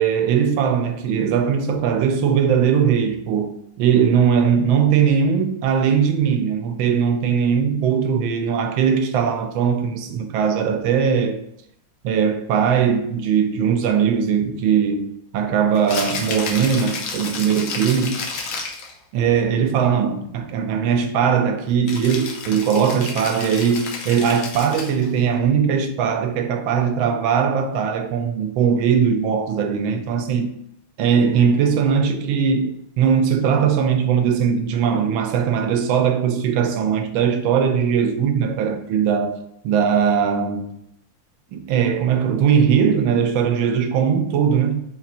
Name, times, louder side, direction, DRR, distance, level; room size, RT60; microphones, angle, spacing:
voice 1, 0.0-11.4 12.0-18.3 19.1-30.5 31.0-40.7 41.5-44.8, right 7 dB, 85° right, 1.4 m, -20 dB
Rattle (instrument), 15.8-18.9 21.9-25.1, left 4 dB, 85° left, 1.6 m, -31 dB
4.0 x 2.5 x 4.2 m
omnidirectional pair, 2.2 m